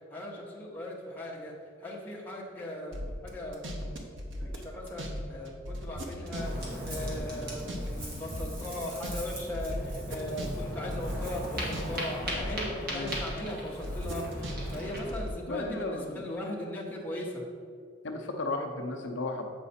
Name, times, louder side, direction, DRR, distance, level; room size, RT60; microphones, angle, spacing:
voice 1, 0.1-3.7 4.4-17.4, left 1 dB, 10° left, -4 dB, 1.0 m, -38 dB
sound 1, 2.9-5.2 5.4-8.0 8.3-12.0 12.2-13.4 13.8-15.3, equal, 70° right, 1.0 m, -37 dB
Ocean, 6.3-15.1, equal, 45° right, 1.8 m, -38 dB
voice 2, 15.5-16.2 18.0-19.5, left 2 dB, 65° left, 2 dB, 0.6 m, -34 dB
7.8 x 4.9 x 4.2 m, 2.2 s
head